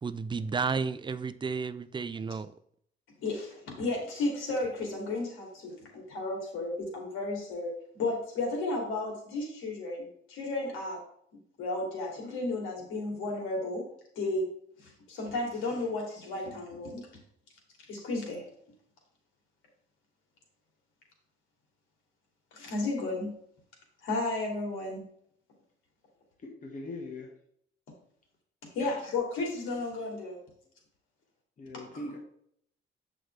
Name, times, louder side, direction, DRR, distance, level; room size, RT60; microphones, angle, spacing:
voice 1, 0.0-2.5, right 5 dB, 25° right, 0.5 m, -32 dB
voice 2, 3.2-11.0 11.6-13.9 14.2-14.5 14.8-17.2 17.9-18.4 22.5-23.3 24.0-25.0 28.7-30.4 31.9-32.0, left 2 dB, 85° left, 2.8 m, -33 dB
voice 3, 26.4-27.3 28.8-29.0 31.6-32.2, left 2 dB, 40° left, 1.5 m, -41 dB
7.8 x 6.4 x 3.3 m
cardioid pair, 90°, 20 cm